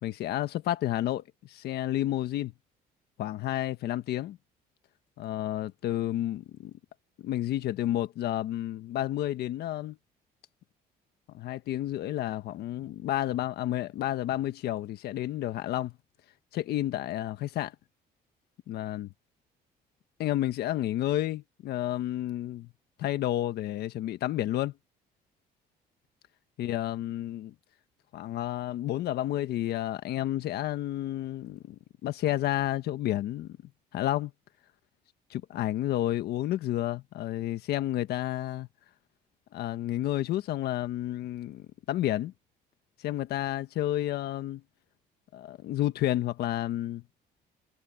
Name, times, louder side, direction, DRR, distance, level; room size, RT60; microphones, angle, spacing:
voice 1, 0.0-2.5 3.2-4.4 5.2-6.7 7.2-10.0 11.3-15.9 16.5-17.7 18.7-19.1 20.2-22.7 23.0-24.7 26.6-27.5 28.1-33.6 33.9-34.3 35.3-38.7 39.5-42.3 43.0-44.6 45.3-47.0, left 13 dB, 70° left, 1.4 m, -31 dB
cardioid pair, 110°, 17 cm